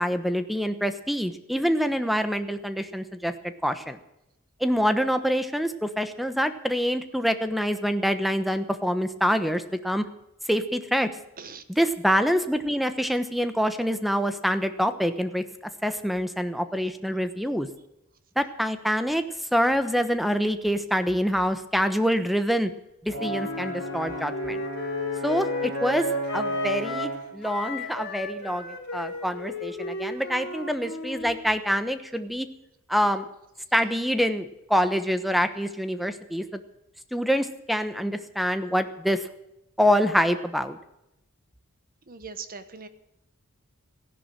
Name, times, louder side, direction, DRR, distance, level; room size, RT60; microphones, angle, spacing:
voice 1, 0.0-3.3 3.6-4.0 4.6-10.1 10.5-11.1 11.7-15.4 15.8-17.7 18.4-19.2 19.5-22.7 23.0-24.6 25.2-32.5 32.9-33.3 33.7-36.6 37.1-39.2 39.8-40.8, equal, ahead, 10 dB, 1.1 m, -26 dB
Brass instrument, 23.1-27.3, equal, 65° right, 6.2 m, -35 dB
Wind instrument woodwind instrument, 23.2-27.2 27.4-31.4, left 2 dB, 55° left, 3.8 m, -33 dB
voice 2, 42.1-42.9, right 5 dB, 40° right, 11 dB, 1.3 m, -40 dB
15.5 x 11.0 x 7.6 m, 0.88 s
head